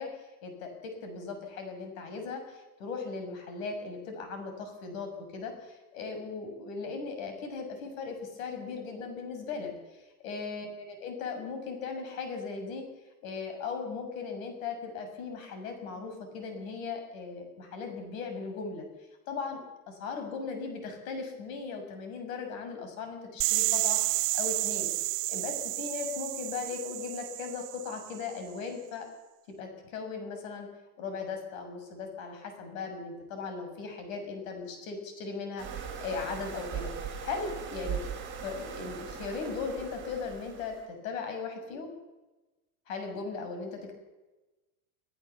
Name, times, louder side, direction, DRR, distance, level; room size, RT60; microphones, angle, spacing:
voice 1, 0.0-9.7 10.2-12.8 13.2-18.9 19.3-19.6 19.9-24.9 25.3-29.1 29.6-30.7 31.0-36.9 37.2-38.0 38.4-41.9 42.9-43.9, left 5 dB, 80° left, 5 dB, 6.8 m, -38 dB
sound 1, 23.4-28.2, right 23 dB, 70° right, 0.7 m, -31 dB
sound 2, 35.6-40.8, right 7 dB, 30° right, 6.6 m, -39 dB
25.0 x 17.0 x 7.1 m, 1.1 s
supercardioid pair, 160°, 40 cm